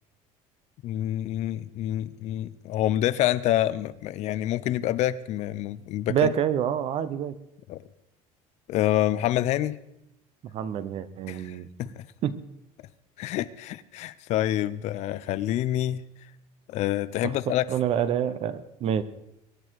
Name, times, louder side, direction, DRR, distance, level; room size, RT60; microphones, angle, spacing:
voice 1, 0.8-6.3 7.7-7.8 8.7-9.8 11.3-12.0 13.2-16.0 16.7-17.6, left 13 dB, 60° left, 15 dB, 0.7 m, -27 dB
voice 2, 6.1-7.3 10.5-11.7 12.2-12.4 17.2-19.0, right 9 dB, 50° right, 14 dB, 1.0 m, -27 dB
23.0 x 10.0 x 4.8 m, 0.83 s
cardioid pair, 145°, 13 cm